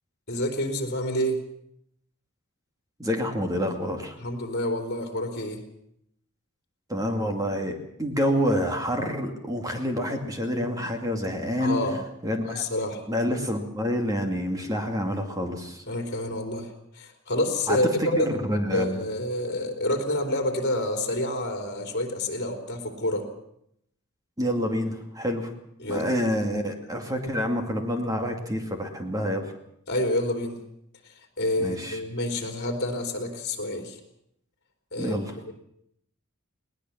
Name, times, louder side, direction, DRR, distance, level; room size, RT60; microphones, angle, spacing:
voice 1, 0.3-1.4 4.2-5.6 11.6-12.0 12.4-13.0 15.9-18.4 18.7-23.3 25.8-26.1 29.9-30.6 31.0-34.0 34.9-35.2 35.4-35.5, left 1 dB, 50° left, 5 dB, 3.6 m, -28 dB
voice 2, 3.0-4.2 6.9-11.8 12.2-12.6 13.1-15.8 17.7-19.0 24.4-25.5 25.9-29.5 31.6-32.0 35.0-35.4, equal, 15° right, 4 dB, 2.4 m, -27 dB
20.5 x 19.0 x 7.3 m, 0.74 s
head